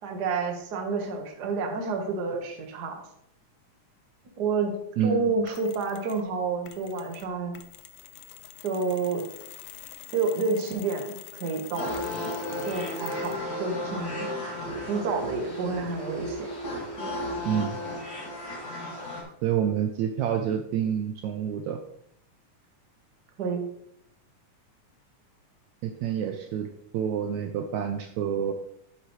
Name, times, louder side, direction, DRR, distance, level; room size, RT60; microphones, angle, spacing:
voice 1, 0.0-3.1 4.4-7.5 8.6-9.3 10.1-11.9 12.6-14.3 14.9-16.5 23.4-23.6, right 4 dB, 45° right, 2 dB, 1.4 m, -29 dB
voice 2, 5.0-5.4 17.5-17.7 19.4-21.8 25.8-26.7 26.9-28.5, right 9 dB, 80° right, 5 dB, 1.8 m, -28 dB
Mechanisms, 5.5-6.3 6.6-13.5, left 12 dB, 90° left, 1.4 m, -46 dB
sound 1, 11.7-19.2, left 1 dB, 30° left, 2.6 m, -34 dB
10.0 x 8.1 x 3.2 m, 0.71 s
omnidirectional pair, 3.7 m